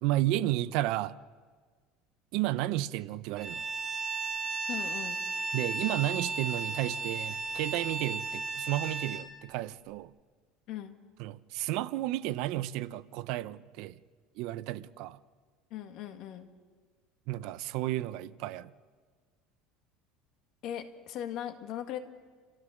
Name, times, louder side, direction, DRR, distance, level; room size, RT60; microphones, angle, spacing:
voice 1, 0.0-1.2 2.3-3.6 5.5-10.1 11.2-14.0 14.4-15.2 17.3-18.7, right 15 dB, 60° right, 0.6 m, -32 dB
Bowed string instrument, 3.4-9.3, right 3 dB, 35° right, 2.1 m, -35 dB
voice 2, 4.7-5.2 10.7-11.0 15.7-16.5 20.6-22.0, left 11 dB, 50° left, 1.7 m, -39 dB
29.5 x 14.0 x 6.5 m
cardioid pair, 155°, 0 cm